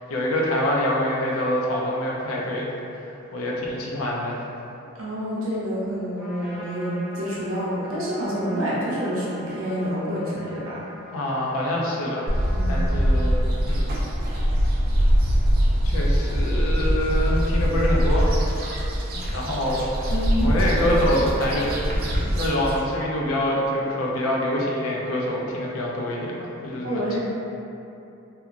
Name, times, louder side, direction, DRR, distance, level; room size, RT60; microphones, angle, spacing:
voice 1, 0.1-2.7 3.0-4.4 11.1-12.3 12.7-13.4 13.6-14.0 15.8-18.5 19.1-20.1 20.4-21.7 22.3-27.2, left 1 dB, 70° left, -3 dB, 0.5 m, -26 dB
voice 2, 4.9-10.8 12.5-12.9 20.1-20.5 26.8-27.2, equal, 70° right, -7 dB, 0.7 m, -28 dB
Trumpet, 6.2-13.4, equal, ahead, 0.6 m, -44 dB
sound 1, 12.3-22.8, equal, 45° right, 0.4 m, -23 dB
sound 2, 16.1-20.6, equal, 45° left, 0.8 m, -34 dB
2.9 x 2.3 x 2.4 m, 2.8 s
head